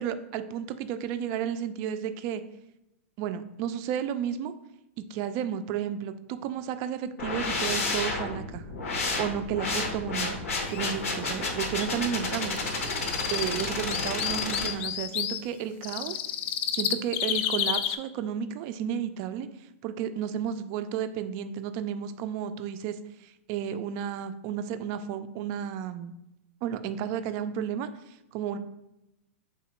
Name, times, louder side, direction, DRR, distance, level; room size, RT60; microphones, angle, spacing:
voice 1, 0.0-2.4 3.2-4.5 5.0-8.6 9.0-10.4 10.7-12.6 13.3-16.2 16.7-19.5 19.8-26.1 26.6-28.6, right 9 dB, 40° right, 10 dB, 0.3 m, -32 dB
sound 1, 7.2-14.7, left 3 dB, 80° left, 0.9 m, -31 dB
sound 2, 10.6-10.9 11.4-11.5 11.8-11.9 12.3-15.4 15.8-18.0, left 10 dB, 50° left, 0.3 m, -31 dB
3.5 x 2.8 x 4.3 m, 0.89 s
hypercardioid pair, 135°, 7 cm